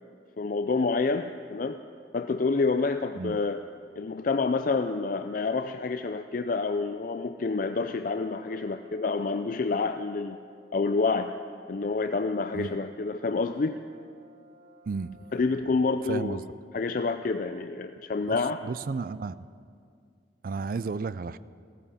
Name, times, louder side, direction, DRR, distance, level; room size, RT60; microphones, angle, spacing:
voice 1, 0.4-1.8 2.1-3.6 4.0-10.4 10.7-11.3 11.7-13.8 15.3-16.4 16.7-18.6, left 4 dB, 50° left, 8 dB, 0.4 m, -28 dB
Brass instrument, 8.2-16.0, equal, 85° right, 3.1 m, -57 dB
voice 2, 16.0-16.4 18.2-18.4 18.6-19.5 20.4-21.4, right 4 dB, 50° right, 16 dB, 0.4 m, -33 dB
16.5 x 14.0 x 5.6 m, 2.2 s
head